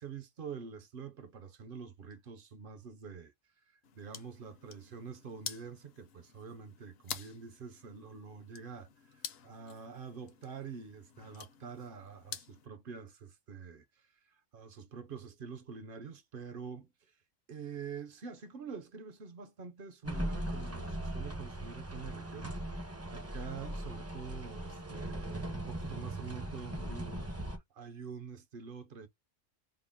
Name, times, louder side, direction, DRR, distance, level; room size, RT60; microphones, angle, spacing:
voice 1, 0.0-3.3 3.7-17.2 17.5-29.1, right 6 dB, 55° right, 0.7 m, -46 dB
sound 1, 3.8-12.7, left 8 dB, 60° left, 0.8 m, -49 dB
sound 2, 20.0-27.6, right 1 dB, 20° right, 0.5 m, -39 dB
3.6 x 2.0 x 3.4 m
omnidirectional pair, 1.3 m